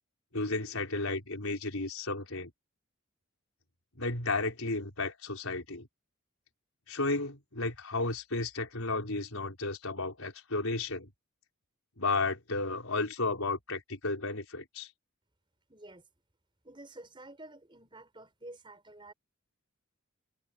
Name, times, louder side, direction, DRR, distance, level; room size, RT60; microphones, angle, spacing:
voice 1, 0.3-2.5 3.9-5.9 6.9-11.1 12.0-14.9, left 3 dB, 80° left, 4.8 m, -33 dB
voice 2, 15.7-16.0 16.6-19.1, right 2 dB, 25° right, 4.9 m, -50 dB
head